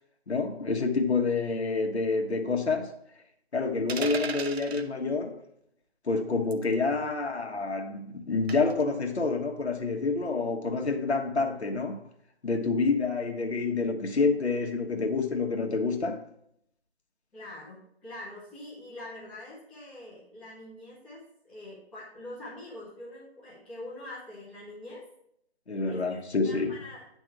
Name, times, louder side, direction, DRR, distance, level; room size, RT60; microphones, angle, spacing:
voice 1, 0.3-2.9 3.5-5.4 6.0-12.0 12.4-16.2 25.7-26.8, left 4 dB, 80° left, 1.3 m, -28 dB
sound 1, 3.9-4.9 6.5-6.7 8.5-8.8, right 5 dB, 70° right, 0.7 m, -36 dB
voice 2, 17.3-25.0 25.8-26.2 26.4-27.0, left 1 dB, 5° left, 1.2 m, -44 dB
10.0 x 3.5 x 4.5 m
figure-of-eight pair, 165°, 32 cm